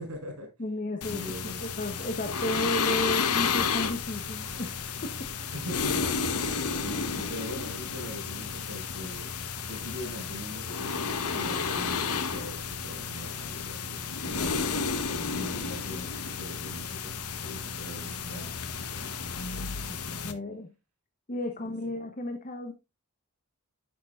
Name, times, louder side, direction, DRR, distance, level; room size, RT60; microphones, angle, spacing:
voice 1, 0.0-0.5 1.1-1.6 1.9-2.0 5.5-9.3 9.7-14.5 15.1-17.1 17.4-19.1 19.7-20.0 21.8-22.0, equal, 85° right, 4.8 m, -42 dB
voice 2, 0.6-5.5 20.2-20.7 21.3-22.7, left 1 dB, 35° left, 1.0 m, -33 dB
sound 1, 1.0-20.3, left 5 dB, 85° left, 1.0 m, -32 dB
10.5 x 6.7 x 2.4 m
head